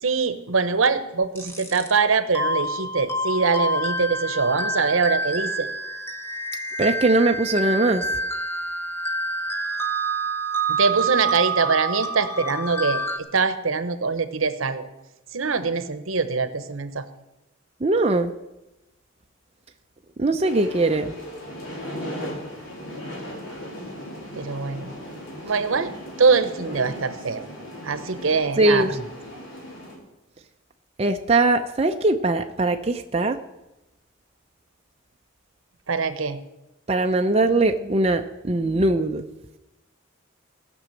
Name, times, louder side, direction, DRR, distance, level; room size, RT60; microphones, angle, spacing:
voice 1, 0.0-5.7 10.7-14.9 15.3-17.0 24.3-24.9 25.4-25.9 26.2-27.5 27.8-28.9 35.9-36.4, right 4 dB, 80° right, 12 dB, 0.9 m, -23 dB
sound 1, 1.4-1.9 2.3-13.2, right 2 dB, 10° left, 1.0 m, -27 dB
voice 2, 6.8-8.1 17.8-18.3 20.2-21.2 28.6-29.0 31.0-33.4 36.9-39.3, right 2 dB, 30° right, 5 dB, 0.5 m, -21 dB
sound 2, 20.4-30.0, equal, 70° left, 3.6 m, -37 dB
16.0 x 6.2 x 7.7 m, 0.97 s
head